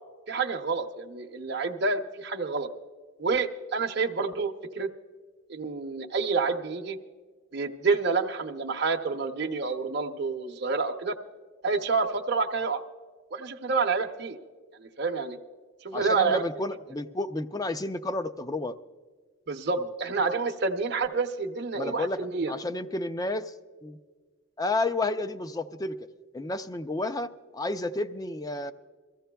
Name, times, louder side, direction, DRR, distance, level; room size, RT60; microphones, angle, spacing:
voice 1, 0.3-2.7 3.2-4.9 5.5-7.0 7.5-11.1 11.6-12.8 13.3-14.4 14.8-15.4 15.8-16.4 19.5-22.5, right 4 dB, 55° right, 3 dB, 0.7 m, -28 dB
voice 2, 15.9-18.8 19.8-19.9 21.7-22.2 22.5-23.5 23.8-24.0 24.6-26.1 26.3-28.7, left 2 dB, 20° left, 11 dB, 0.4 m, -31 dB
24.5 x 15.0 x 2.3 m, 1.5 s
head